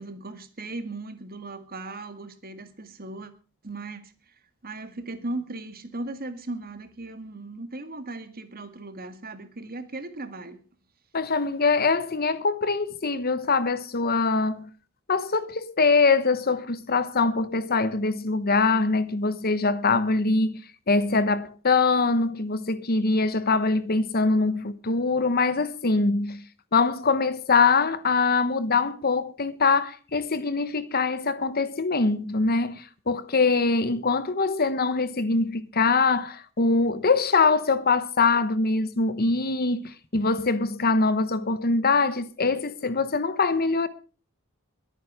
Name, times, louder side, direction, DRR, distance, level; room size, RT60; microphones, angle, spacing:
voice 1, 0.0-3.3 3.6-4.4 4.6-10.6, right 2 dB, 45° right, 1.9 m, -37 dB
voice 2, 11.1-14.7 15.1-20.6 20.9-26.4 26.7-43.9, left 4 dB, 45° left, 1.1 m, -23 dB
22.0 x 9.1 x 4.9 m
head